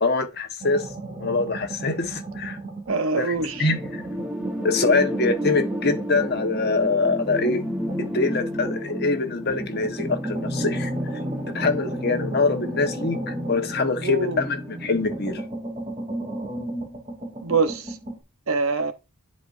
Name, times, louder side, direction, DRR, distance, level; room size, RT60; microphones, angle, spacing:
voice 1, 0.0-0.9 1.2-2.6 3.2-4.0 4.6-7.7 8.0-10.9 11.5-15.4, left 3 dB, 45° left, 1.2 m, -24 dB
sound 1, 0.6-3.1 3.4-9.0 9.5-14.5 14.8-18.2, right 1 dB, 30° right, 2.9 m, -35 dB
voice 2, 2.9-3.7 14.0-14.4 17.4-18.0 18.5-18.9, right 4 dB, 70° right, 0.9 m, -24 dB
sound 2, 3.4-15.4, equal, 5° right, 1.1 m, -31 dB
11.0 x 4.3 x 2.6 m
head